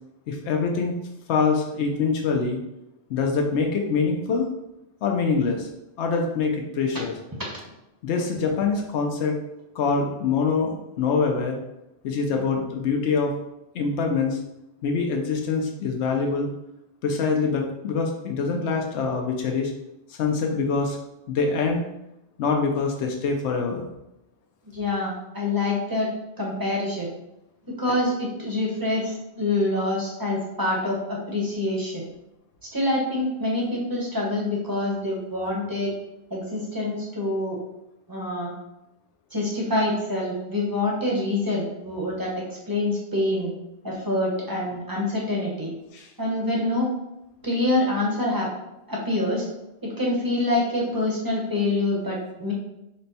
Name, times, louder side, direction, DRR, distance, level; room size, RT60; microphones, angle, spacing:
voice 1, 0.3-1.0 1.3-2.6 3.1-4.5 5.0-5.7 6.0-7.1 8.0-9.4 9.7-11.6 12.0-13.3 13.7-14.4 14.8-16.5 17.0-19.7 20.1-21.0 21.3-21.8 22.4-23.9 45.9-46.1, left 4 dB, 90° left, 1 dB, 0.9 m, -24 dB
voice 2, 24.7-26.1 26.4-27.1 27.8-32.1 32.7-35.9 36.3-37.6 38.1-38.5 39.3-42.3 42.7-43.5 43.8-45.7 46.2-46.9 47.4-48.5 48.9-49.4 49.8-52.5, left 2 dB, 20° right, -3 dB, 0.9 m, -26 dB
4.2 x 2.2 x 4.0 m, 0.89 s
omnidirectional pair, 1.1 m